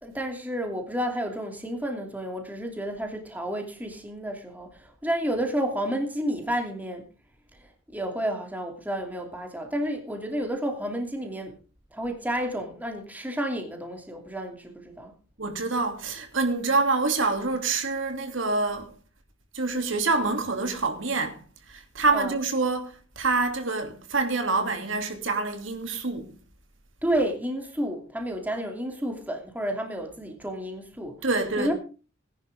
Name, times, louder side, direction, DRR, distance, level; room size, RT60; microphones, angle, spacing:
voice 1, 0.0-7.1 7.9-11.6 11.9-15.1 22.1-22.3 27.0-31.2 31.6-31.7, right 1 dB, 10° right, 2.7 m, -31 dB
voice 2, 15.4-18.9 19.5-21.4 21.7-26.3 31.2-31.7, right 3 dB, 75° right, 2.8 m, -26 dB
19.5 x 10.5 x 3.6 m
head